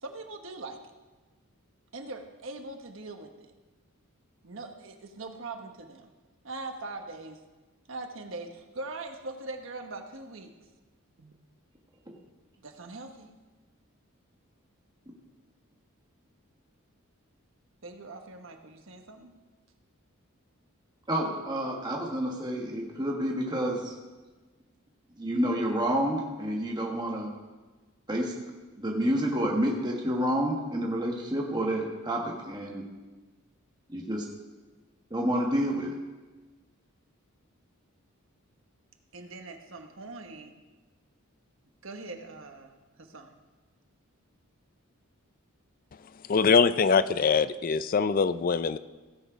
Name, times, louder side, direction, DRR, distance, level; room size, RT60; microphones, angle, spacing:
voice 1, 0.0-0.8 1.9-3.5 4.4-6.1 6.4-7.4 7.9-10.5 11.2-11.3 12.6-13.3 17.8-19.3 39.1-40.5 41.8-42.7 43.0-43.3, right 3 dB, 65° right, 5 dB, 1.3 m, -41 dB
voice 2, 21.1-23.9 25.2-27.3 28.1-28.3 28.8-32.8 33.9-34.2 35.1-35.9, equal, 20° right, -1 dB, 1.3 m, -29 dB
voice 3, 46.3-48.8, left 5 dB, 40° left, 14 dB, 0.4 m, -23 dB
16.5 x 7.3 x 5.1 m, 1.2 s
head